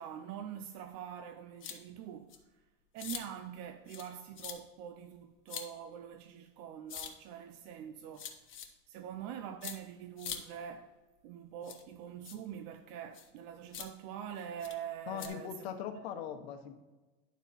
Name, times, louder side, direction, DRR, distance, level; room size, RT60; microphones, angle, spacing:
voice 1, 0.0-2.6 2.9-8.4 8.9-15.6, right 9 dB, 65° right, 0.6 m, -45 dB
sound 1, 1.6-1.8 2.3-2.4 3.0-3.2 3.9-4.1 4.4-4.6 5.5-5.7 6.9-7.1 8.2-8.7 9.6-9.8 10.2-10.4 11.6-11.8 12.2-12.4 13.1-13.3 13.7-13.9 14.6-14.7 15.2-15.3, left 9 dB, 40° left, 1.2 m, -42 dB
voice 2, 15.1-16.7, left 8 dB, 90° left, 1.1 m, -40 dB
11.5 x 4.1 x 4.1 m
supercardioid pair, 115°, 30 cm